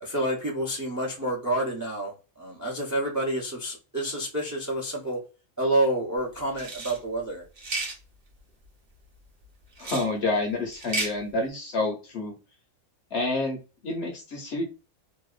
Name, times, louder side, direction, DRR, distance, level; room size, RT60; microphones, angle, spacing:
voice 1, 0.0-5.2 5.6-7.4, right 1 dB, 25° right, 0.4 m, -28 dB
sound 1, 6.5-7.0 7.6-8.0 9.8-10.1 10.7-11.1, right 2 dB, 50° right, 0.8 m, -32 dB
voice 2, 9.8-12.3 13.1-13.6 13.8-14.6, left 2 dB, 60° left, 0.8 m, -28 dB
2.7 x 2.1 x 2.3 m
omnidirectional pair, 1.5 m